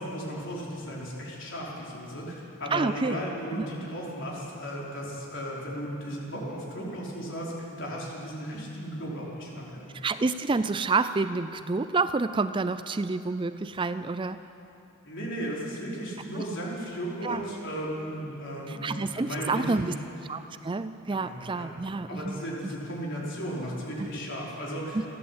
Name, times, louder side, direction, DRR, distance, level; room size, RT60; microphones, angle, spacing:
voice 1, 0.0-9.9 15.0-20.0 21.1-21.7 22.1-25.1, equal, 55° left, -4 dB, 5.0 m, -35 dB
voice 2, 2.7-3.2 3.6-3.7 9.9-14.4 16.3-16.4 17.2-17.4 18.7-19.9 20.3-22.4 24.9-25.1, right 3 dB, 20° right, 12 dB, 0.4 m, -28 dB
29.0 x 11.0 x 8.4 m, 2.9 s
head